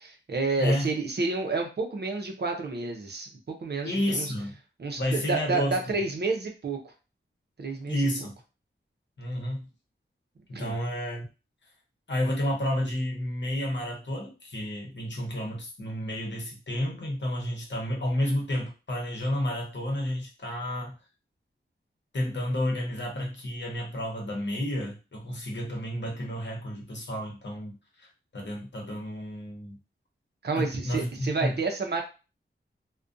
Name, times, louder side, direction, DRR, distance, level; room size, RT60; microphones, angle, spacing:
voice 1, 0.0-4.3 4.8-6.8 7.6-8.0 10.5-10.8 30.4-32.0, right 3 dB, 55° right, 2 dB, 0.6 m, -30 dB
voice 2, 0.6-0.9 3.8-4.5 5.0-5.8 7.9-8.3 9.2-9.7 10.5-11.3 12.1-21.0 22.1-28.1 28.3-29.8 30.6-31.6, left 1 dB, 60° left, -1 dB, 0.9 m, -31 dB
2.4 x 2.2 x 2.5 m, 0.31 s
wide cardioid pair, 85°, 21 cm